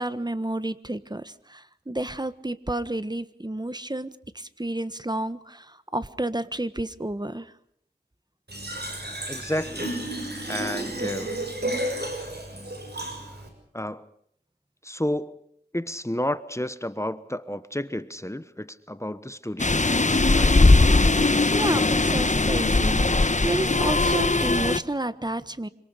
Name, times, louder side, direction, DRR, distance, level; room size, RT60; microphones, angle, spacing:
voice 1, 0.0-7.5 21.5-25.7, right 1 dB, 25° right, 13 dB, 1.4 m, -30 dB
Fill (with liquid), 8.5-13.5, right 1 dB, 65° right, 6.7 m, -32 dB
voice 2, 9.3-10.0 10.5-11.4 13.7-14.1 14.8-15.4 15.7-20.6 21.1-21.4, left 1 dB, 15° left, 14 dB, 1.2 m, -31 dB
sound 1, 19.6-24.8, left 2 dB, 40° left, 1.2 m, -20 dB
27.0 x 25.5 x 5.1 m, 0.68 s
wide cardioid pair, 40°, 18 cm